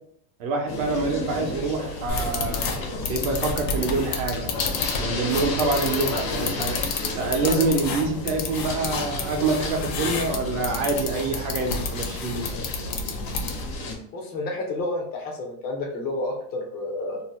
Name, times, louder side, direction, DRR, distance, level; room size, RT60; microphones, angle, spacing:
voice 1, 0.4-2.7 3.1-4.5 5.0-6.8 7.1-12.5, right 3 dB, 55° right, 2 dB, 0.7 m, -26 dB
sound 1, 0.7-14.0, left 2 dB, 85° left, 1.0 m, -33 dB
sound 2, 2.1-13.8, left 4 dB, 60° left, 0.7 m, -31 dB
voice 2, 14.1-17.2, left 2 dB, 20° left, 0 dB, 0.4 m, -30 dB
2.7 x 2.1 x 3.1 m, 0.69 s
supercardioid pair, 155°, 48 cm